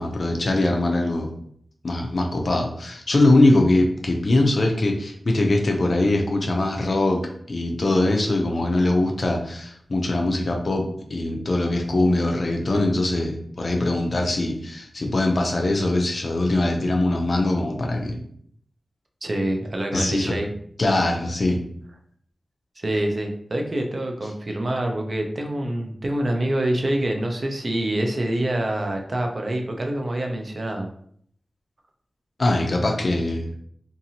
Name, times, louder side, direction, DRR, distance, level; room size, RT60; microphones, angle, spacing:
voice 1, 0.0-1.3 1.8-18.2 19.9-20.4 20.8-21.6 32.4-33.5, left 2 dB, 50° left, 2 dB, 0.5 m, -22 dB
voice 2, 19.2-20.5 22.8-30.9, right 1 dB, 45° right, 2 dB, 0.4 m, -26 dB
2.7 x 2.5 x 2.7 m, 0.63 s
wide cardioid pair, 105°, 0 cm